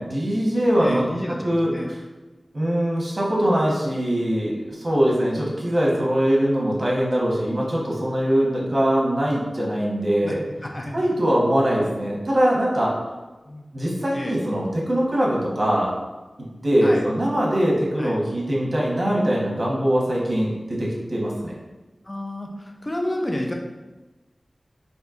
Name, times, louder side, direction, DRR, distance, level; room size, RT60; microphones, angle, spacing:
voice 1, 0.0-1.0 1.4-2.0 2.5-10.4 10.9-12.9 13.7-15.9 16.6-21.6, equal, 50° right, -4 dB, 1.1 m, -22 dB
voice 2, 0.8-1.9 10.2-10.3 10.6-11.0 13.5-13.7 14.1-14.4 16.8-17.0 18.0-18.2 22.0-23.5, left 1 dB, 35° left, 1 dB, 0.6 m, -30 dB
4.3 x 2.7 x 2.5 m, 1.1 s
wide cardioid pair, 55°, 0 cm